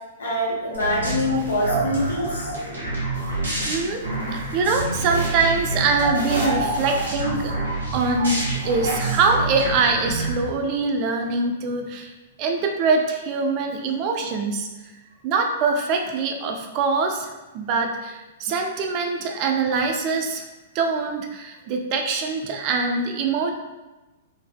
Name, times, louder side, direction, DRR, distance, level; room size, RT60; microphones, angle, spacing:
voice 1, 0.2-2.4, left 1 dB, 75° left, -4 dB, 1.1 m, -24 dB
sound 1, 0.7-10.4, right 2 dB, 85° right, 1.2 m, -27 dB
voice 2, 3.6-4.0 4.3-7.5 7.9-12.1 12.4-14.7 15.2-20.4 20.7-23.5, right 4 dB, 40° right, 3 dB, 0.4 m, -23 dB
3.8 x 2.6 x 2.2 m, 1.1 s
figure-of-eight pair, 110°, 0 cm